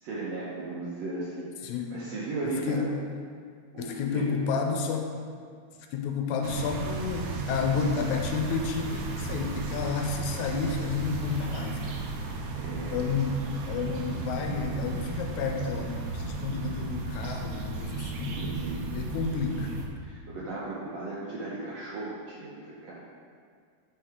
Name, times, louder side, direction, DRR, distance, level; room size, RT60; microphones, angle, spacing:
voice 1, 0.0-2.9 3.7-4.4 12.5-13.0 18.2-18.8 19.1-19.6 20.0-23.0, right 3 dB, 70° right, -6 dB, 1.7 m, -36 dB
voice 2, 1.6-2.0 2.4-2.8 3.8-5.1 5.9-12.0 12.9-18.4 18.9-19.7, left 5 dB, 80° left, 3 dB, 1.9 m, -31 dB
sound 1, 6.4-19.9, right 3 dB, 85° right, 2.2 m, -35 dB
6.3 x 4.8 x 4.6 m, 2.1 s
omnidirectional pair, 3.6 m